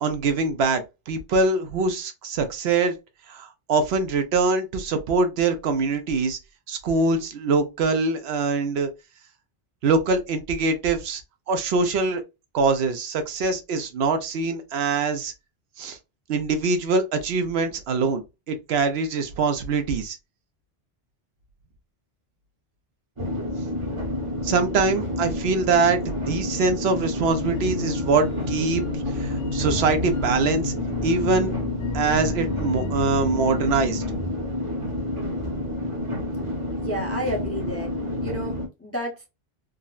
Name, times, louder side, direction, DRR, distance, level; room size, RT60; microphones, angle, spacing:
voice 1, 0.0-2.9 3.3-6.4 6.7-8.9 9.8-11.2 11.5-12.2 12.5-15.3 15.8-16.0 16.3-18.2 18.5-20.2 24.4-28.8 29.2-30.7 31.0-31.5 31.9-34.0, right 4 dB, 75° right, 0.9 m, -23 dB
sound 1, 23.2-38.7, left 1 dB, 35° right, 0.8 m, -29 dB
sound 2, 27.3-34.2, left 3 dB, 55° left, 0.8 m, -32 dB
voice 2, 36.8-37.9 38.2-39.3, equal, 15° left, 0.6 m, -31 dB
3.6 x 2.1 x 2.4 m
omnidirectional pair, 1.1 m